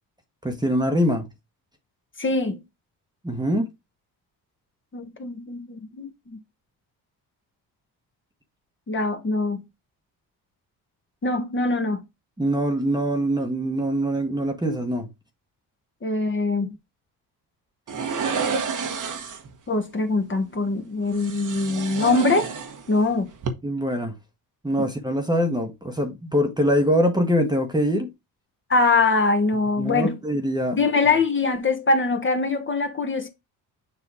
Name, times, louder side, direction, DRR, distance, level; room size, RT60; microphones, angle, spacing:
voice 1, 0.4-1.3 3.2-3.7 12.4-15.1 23.6-24.2 24.6-28.1 29.8-30.8, equal, 10° right, 1.2 m, -23 dB
voice 2, 2.2-2.6 4.9-6.4 8.9-9.6 11.2-12.0 16.0-16.8 19.7-22.5 22.9-23.3 28.7-30.1 30.7-33.3, left 3 dB, 30° left, 1.4 m, -23 dB
sound 1, 17.9-19.5 21.1-23.1 23.3-23.5, right 5 dB, 45° right, 1.3 m, -29 dB
7.3 x 2.8 x 5.0 m
supercardioid pair, 70°, 41 cm